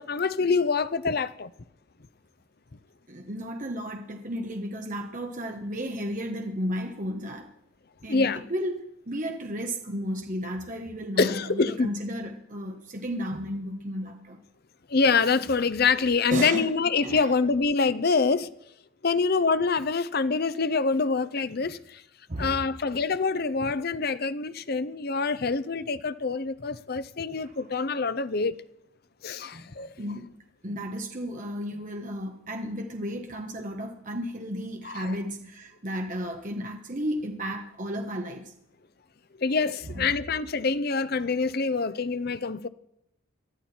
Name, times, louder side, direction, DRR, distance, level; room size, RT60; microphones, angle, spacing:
voice 1, 0.0-1.5 8.1-8.4 11.2-11.9 14.9-18.5 19.0-22.0 22.4-28.6 29.2-29.9 34.9-35.1 39.4-42.7, left 4 dB, 45° left, 0.6 m, -25 dB
voice 2, 3.1-7.5 8.0-14.4 16.3-16.7 17.0-17.3 21.6-21.7 22.3-22.7 27.4-27.6 29.5-29.7 30.0-30.3 30.6-38.5 39.9-40.2, equal, 40° right, 1.2 m, -33 dB
19.5 x 13.0 x 4.4 m
head